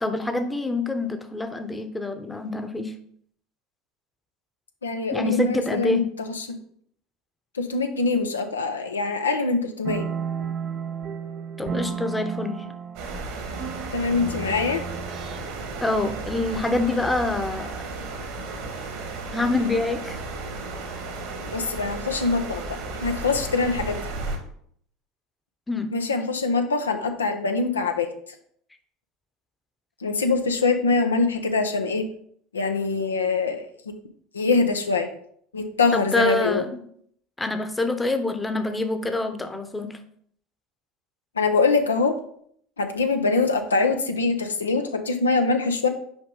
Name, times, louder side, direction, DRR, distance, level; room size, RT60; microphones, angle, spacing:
voice 1, 0.0-2.9 5.1-6.1 11.6-12.6 15.8-17.8 19.3-20.2 25.7-25.9 35.9-36.7 37.4-40.0, left 2 dB, 10° left, 8 dB, 0.8 m, -26 dB
voice 2, 4.8-6.5 7.5-10.1 13.9-14.8 21.5-24.0 25.9-28.1 30.0-32.1 32.5-33.9 34.3-35.1 35.5-36.6 41.4-42.2 42.8-45.9, left 4 dB, 90° left, 6 dB, 0.6 m, -24 dB
sound 1, 9.8-15.8, right 7 dB, 45° right, 0.5 m, -33 dB
sound 2, 12.9-24.4, right 3 dB, 65° right, 1.5 m, -34 dB
6.1 x 4.8 x 3.9 m, 0.64 s
hypercardioid pair, 75°, 0 cm